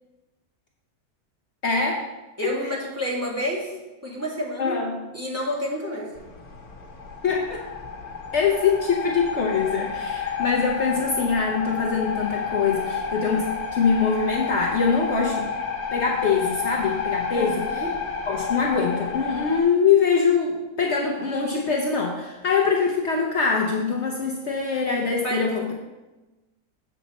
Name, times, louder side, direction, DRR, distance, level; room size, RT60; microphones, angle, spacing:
voice 1, 1.6-2.1 2.4-2.7 4.6-5.0 7.2-7.7 8.3-15.5 15.9-17.8 18.3-25.7, left 5 dB, 55° left, 0 dB, 1.0 m, -23 dB
voice 2, 2.4-3.7 4.0-4.8 5.1-6.1 17.3-17.9 25.1-25.7, equal, 10° right, -4 dB, 1.6 m, -29 dB
sound 1, 6.1-19.6, left 6 dB, 85° left, 1.6 m, -30 dB
7.2 x 7.0 x 4.1 m, 1.1 s
omnidirectional pair, 1.5 m